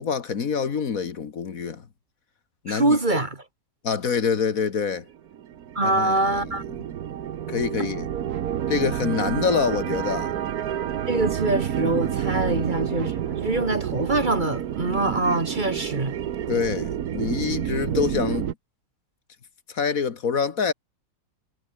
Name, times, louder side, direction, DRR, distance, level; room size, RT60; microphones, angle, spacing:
voice 1, 0.0-1.8 2.6-3.0 3.8-5.1 5.8-6.5 7.5-8.1 8.7-10.3 12.5-12.6 16.5-18.5 19.7-20.7, left 6 dB, 65° left, 1.9 m, -26 dB
voice 2, 2.7-3.4 5.7-6.6 7.8-7.9 11.1-16.2, right 2 dB, 30° right, 2.2 m, -24 dB
sound 1, 5.1-18.5, right 10 dB, 75° right, 1.5 m, -29 dB
omnidirectional pair, 1.6 m